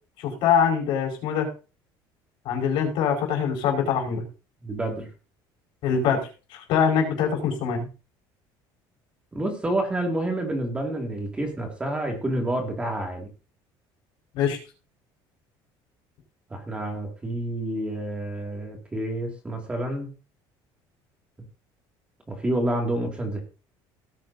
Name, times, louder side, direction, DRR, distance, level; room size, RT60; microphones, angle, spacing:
voice 1, 0.2-1.5 2.4-4.2 5.8-7.9 14.3-14.6, left 7 dB, 65° left, 1 dB, 4.9 m, -24 dB
voice 2, 4.6-5.1 9.3-13.3 16.5-20.1 22.3-23.4, right 1 dB, 10° right, 2 dB, 2.2 m, -28 dB
17.5 x 9.0 x 2.7 m, 0.33 s
cardioid pair, 165°, 9 cm